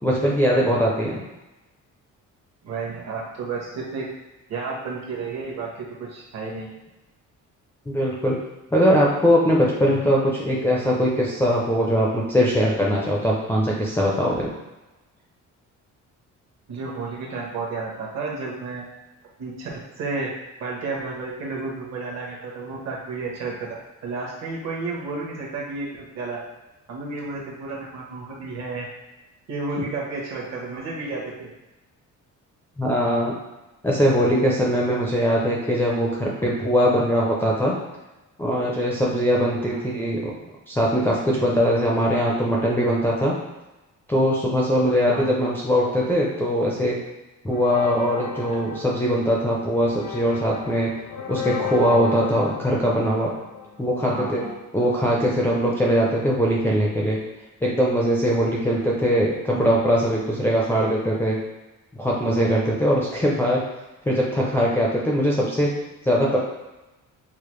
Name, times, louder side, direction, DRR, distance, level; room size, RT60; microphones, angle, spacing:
voice 1, 0.0-1.2 7.9-8.4 8.7-14.5 32.8-33.3 33.8-37.8 38.4-40.3 40.7-43.3 44.1-47.0 47.4-50.9 51.3-53.3 53.8-54.4 54.7-57.2 57.6-61.4 61.9-63.6 64.1-65.7 66.0-66.4, equal, 10° left, -5 dB, 0.4 m, -21 dB
voice 2, 2.6-4.1 4.5-6.8 16.7-18.8 19.4-20.3 20.6-26.4 26.9-28.9 29.5-31.5 39.7-39.9 45.1-45.3 54.1-54.6 59.5-59.8, right 3 dB, 60° right, -2 dB, 1.0 m, -32 dB
sound 1, 47.5-54.3, left 7 dB, 70° left, 0.5 m, -35 dB
4.8 x 2.1 x 3.1 m, 1.0 s
cardioid pair, 175°, 31 cm